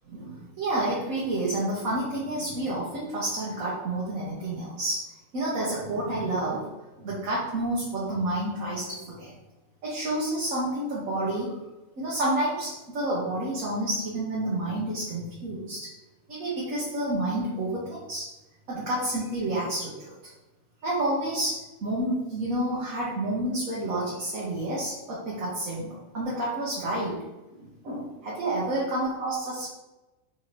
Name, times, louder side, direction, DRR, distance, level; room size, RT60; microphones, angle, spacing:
voice 1, 0.1-5.1 5.3-6.6 6.9-9.3 9.8-11.6 12.0-15.9 16.3-18.3 18.7-20.3 20.8-27.2 27.5-29.7, right 1 dB, 65° right, -7 dB, 1.3 m, -29 dB
3.8 x 2.8 x 3.1 m, 1.0 s
omnidirectional pair, 1.6 m